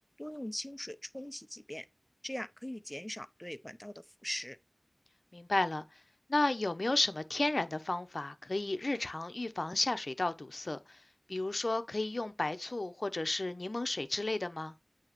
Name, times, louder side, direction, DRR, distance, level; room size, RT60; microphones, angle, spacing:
voice 1, 0.2-1.9 2.2-4.6, left 1 dB, 15° left, 0.6 m, -41 dB
voice 2, 5.3-5.8 6.3-11.0 11.3-14.7, left 2 dB, 55° left, 0.8 m, -33 dB
8.6 x 2.9 x 6.0 m
wide cardioid pair, 45°, 0 cm